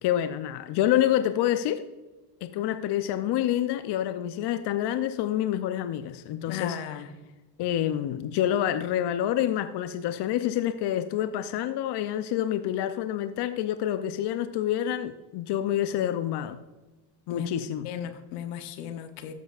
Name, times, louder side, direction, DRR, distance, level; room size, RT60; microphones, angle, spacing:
voice 1, 0.0-1.8 2.4-6.8 7.6-16.6 17.3-17.9, left 11 dB, 55° left, 11 dB, 0.7 m, -27 dB
voice 2, 6.5-7.1 17.3-17.5 17.8-19.3, left 9 dB, 80° left, 8 dB, 1.2 m, -35 dB
13.0 x 8.0 x 2.5 m, 1.1 s
supercardioid pair, 85°, 49 cm